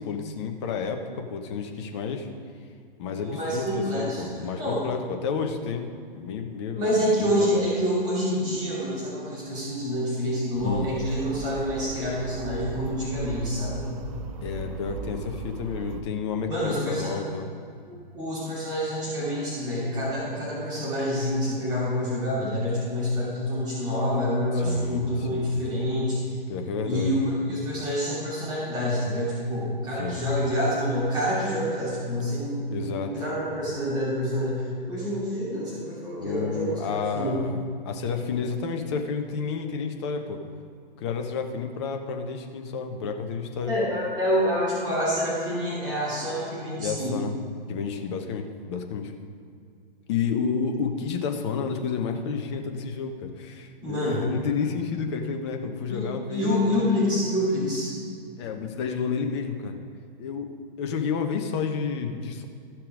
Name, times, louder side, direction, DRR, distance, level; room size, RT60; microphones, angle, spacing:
voice 1, 0.0-2.3 3.0-5.9 6.1-7.7 10.6-10.9 14.4-17.5 24.5-25.6 26.5-27.2 30.0-30.3 32.7-33.1 36.2-40.4 41.0-43.7 46.8-47.3 47.7-49.1 50.1-56.8 58.4-59.8 60.2-60.5 60.8-62.5, left 5 dB, 30° left, 5 dB, 1.0 m, -31 dB
voice 2, 3.2-4.8 6.7-13.9 16.5-17.1 17.9-26.4 26.8-37.4 43.7-47.1 53.8-54.3 55.9-57.9, equal, 15° right, -9 dB, 2.8 m, -27 dB
sound 1, 10.5-16.0, right 5 dB, 35° right, 0.7 m, -37 dB
14.5 x 5.9 x 5.0 m, 2.3 s
figure-of-eight pair, 120°, 29 cm